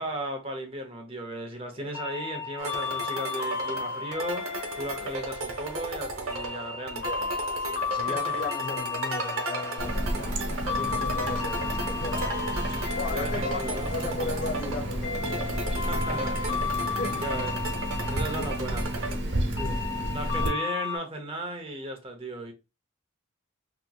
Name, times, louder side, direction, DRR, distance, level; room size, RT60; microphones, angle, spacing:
voice 1, 0.0-4.5 4.7-7.1 8.1-8.5 13.1-13.9 15.9-16.4 16.9-17.5 18.1-18.8 20.1-22.5, right 1 dB, 25° right, 0.7 m, -35 dB
sound 1, 1.9-21.0, left 5 dB, 70° left, 1.0 m, -34 dB
sound 2, 2.6-19.2, right 3 dB, 85° right, 0.9 m, -36 dB
voice 2, 7.0-12.6 12.9-15.9 17.0-17.3 18.4-18.5 19.6-19.9 20.3-20.5, left 3 dB, 45° left, 0.3 m, -37 dB
Water tap faucet, 9.8-20.5, right 1 dB, 60° right, 0.9 m, -32 dB
3.6 x 2.9 x 2.3 m
head